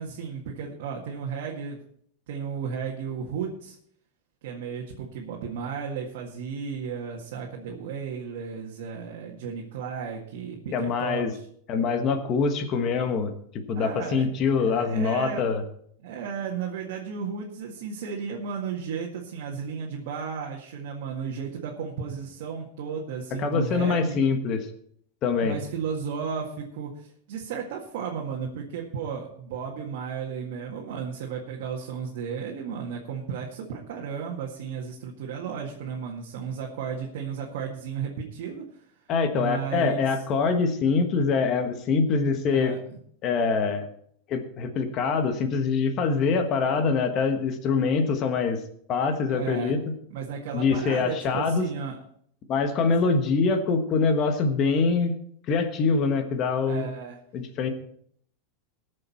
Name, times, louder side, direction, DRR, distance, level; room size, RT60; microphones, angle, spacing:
voice 1, 0.0-1.8 2.3-3.8 4.4-11.2 13.7-14.4 14.6-15.5 16.0-24.2 25.4-38.6 39.3-40.1 42.5-43.0 49.3-49.7 50.1-52.0 53.0-53.1 56.7-57.2, right 6 dB, 60° right, -2 dB, 1.8 m, -34 dB
voice 2, 10.7-11.3 11.7-15.6 23.4-24.7 25.2-25.6 39.1-42.7 43.2-43.9 44.3-48.6 48.9-49.8 50.5-51.7 52.5-55.1 55.5-56.9 57.3-57.7, left 4 dB, 30° left, 7 dB, 1.3 m, -24 dB
20.0 x 6.6 x 4.5 m, 0.65 s
supercardioid pair, 170°, 0 cm